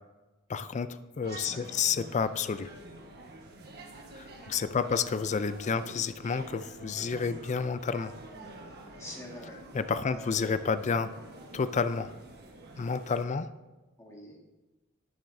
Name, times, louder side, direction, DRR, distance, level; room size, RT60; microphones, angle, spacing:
voice 1, 0.5-2.7 4.1-8.1 9.7-11.1 11.5-12.1 12.8-13.5, left 5 dB, 35° left, 13 dB, 0.4 m, -30 dB
sound 1, 1.2-13.3, right 2 dB, 50° right, 1.3 m, -48 dB
voice 2, 1.3-1.8 4.8-5.2 5.6-5.9 8.7-9.6 10.1-10.4 14.0-14.4, left 1 dB, 15° left, -2 dB, 1.9 m, -46 dB
11.5 x 9.3 x 2.7 m, 1.1 s
head